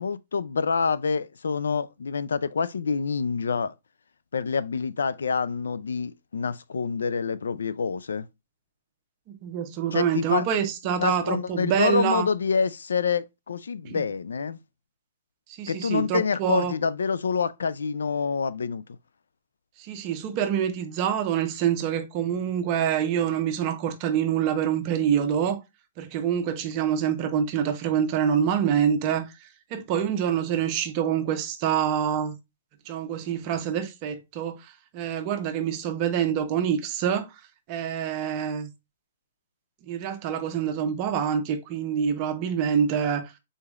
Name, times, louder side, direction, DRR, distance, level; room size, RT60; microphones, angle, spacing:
voice 1, 0.0-3.7 4.3-8.3 9.9-10.4 11.0-14.6 15.7-18.8, left 5 dB, 90° left, 0.4 m, -27 dB
voice 2, 9.3-12.3 13.8-14.1 15.6-16.7 19.8-25.6 26.0-32.3 32.9-37.3 37.7-38.7 39.8-43.3, right 8 dB, 35° right, 0.7 m, -26 dB
4.9 x 4.0 x 2.4 m
hypercardioid pair, 145°, 0 cm